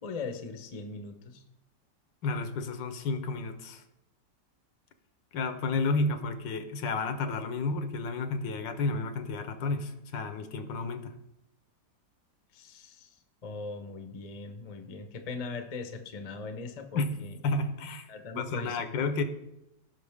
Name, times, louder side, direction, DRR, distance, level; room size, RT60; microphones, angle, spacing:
voice 1, 0.0-1.4 12.5-13.1 13.4-17.4 18.1-18.8, left 4 dB, 40° left, 6 dB, 0.5 m, -40 dB
voice 2, 2.2-3.8 5.3-11.2 16.9-17.1 17.4-18.1 18.3-19.2, left 3 dB, 80° left, 9 dB, 1.6 m, -31 dB
16.0 x 6.0 x 3.5 m, 0.88 s
omnidirectional pair, 2.0 m